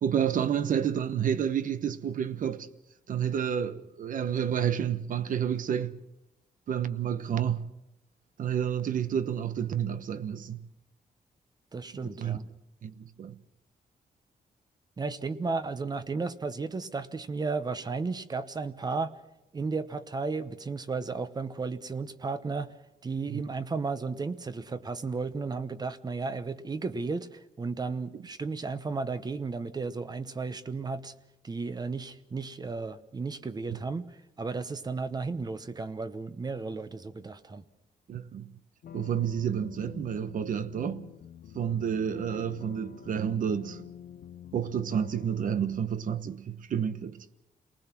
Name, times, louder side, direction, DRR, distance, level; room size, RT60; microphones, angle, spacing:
voice 1, 0.0-2.7 3.1-6.0 6.7-7.7 8.4-10.7 12.2-12.4 12.8-13.4 23.3-23.4 38.1-38.5 38.9-41.1 41.5-43.9 44.5-47.2, right 8 dB, 60° right, 1.1 m, -30 dB
voice 2, 11.7-12.5 15.0-19.1 19.5-22.7 23.0-31.1 31.4-37.6, right 4 dB, 25° right, 0.9 m, -34 dB
sound 1, 38.8-45.9, left 9 dB, 85° left, 0.9 m, -47 dB
29.0 x 19.5 x 6.1 m
wide cardioid pair, 160°, 15 cm